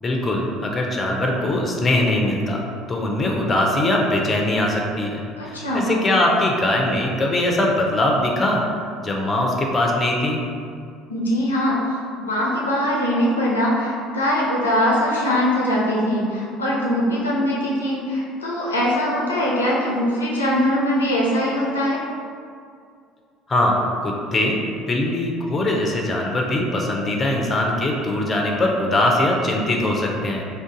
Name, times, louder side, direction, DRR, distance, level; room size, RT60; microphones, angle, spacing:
voice 1, 0.0-5.2 5.5-8.6 9.0-10.4 23.5-23.8 24.0-24.6 24.9-30.4, left 1 dB, 30° left, 0 dB, 0.5 m, -21 dB
voice 2, 5.4-5.9 11.1-11.8 12.2-22.0, equal, 90° left, -4 dB, 0.4 m, -21 dB
2.5 x 2.3 x 3.7 m, 2.3 s
hypercardioid pair, 65°, 0 cm